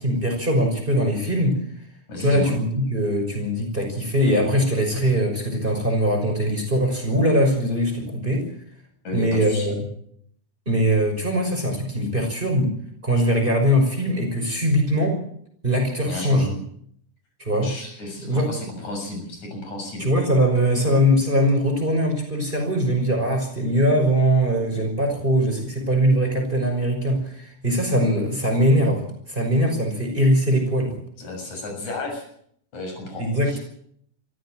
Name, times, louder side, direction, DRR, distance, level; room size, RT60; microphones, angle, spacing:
voice 1, 0.0-1.6 2.2-8.4 9.1-9.8 10.7-12.7 13.0-15.2 15.6-16.5 17.4-17.7 18.2-18.5 20.0-29.0 29.3-31.0 33.2-33.6, equal, 15° right, 3 dB, 5.8 m, -21 dB
voice 2, 2.1-2.6 9.0-9.8 16.0-16.6 17.6-20.1 31.2-32.3 32.7-33.6, left 2 dB, 70° left, 2 dB, 8.4 m, -32 dB
24.0 x 15.0 x 7.7 m, 0.68 s
omnidirectional pair, 3.5 m